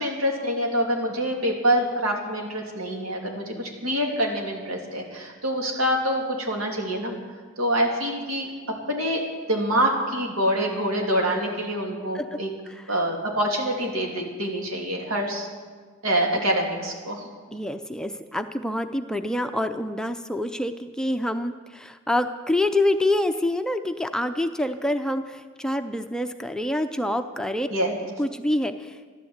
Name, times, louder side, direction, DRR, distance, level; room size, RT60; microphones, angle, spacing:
voice 1, 0.0-7.1 7.6-8.5 8.9-9.2 9.5-12.5 12.9-15.5 16.0-17.3 27.7-27.9, equal, 90° right, 0 dB, 2.9 m, -25 dB
voice 2, 17.5-27.7 28.2-28.9, left 1 dB, 5° left, 7 dB, 0.5 m, -26 dB
13.5 x 12.0 x 8.0 m, 1.5 s
head